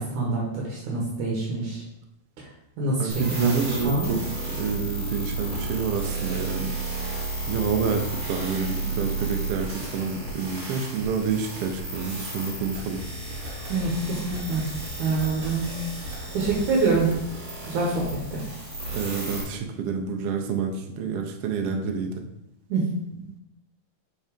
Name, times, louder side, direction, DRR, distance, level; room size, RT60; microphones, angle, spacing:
voice 1, 0.0-1.8 2.8-4.1 13.7-14.6 15.0-15.8 16.3-17.1 17.6-18.4 22.7-23.4, right 3 dB, 70° right, -3 dB, 2.6 m, -26 dB
voice 2, 3.0-4.2 4.5-6.7 7.5-13.0 18.9-22.1, right 6 dB, 85° right, 3 dB, 1.3 m, -28 dB
sound 1, 3.1-19.4, right 2 dB, 45° right, 2.8 m, -33 dB
5.5 x 4.8 x 5.1 m, 0.86 s
omnidirectional pair, 3.8 m